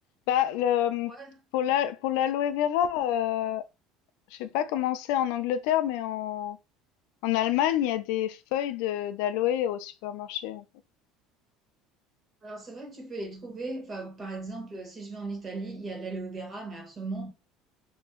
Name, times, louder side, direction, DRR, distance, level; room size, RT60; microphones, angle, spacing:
voice 1, 0.3-1.1 1.5-3.6 4.3-6.6 7.2-10.6, left 11 dB, 80° left, 0.4 m, -27 dB
voice 2, 12.4-17.3, right 3 dB, 25° right, 1.4 m, -37 dB
2.9 x 2.5 x 3.6 m
cardioid pair, 135°, 0 cm